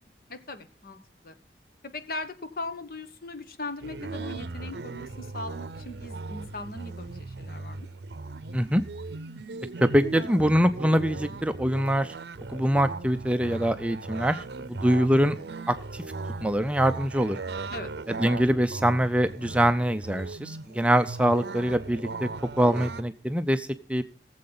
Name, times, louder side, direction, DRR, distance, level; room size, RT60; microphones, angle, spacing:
voice 1, 0.3-1.0 1.2-1.4 1.9-7.9 17.7-17.9, left 2 dB, 55° left, 9 dB, 1.3 m, -39 dB
sound 1, 3.8-23.0, right 3 dB, 70° right, 0.6 m, -38 dB
voice 2, 9.8-12.1 12.5-15.4 15.7-16.0 16.4-17.4 18.1-22.3 22.6-24.0, equal, 5° right, 10 dB, 0.4 m, -24 dB
18.5 x 7.7 x 4.0 m, 0.41 s
head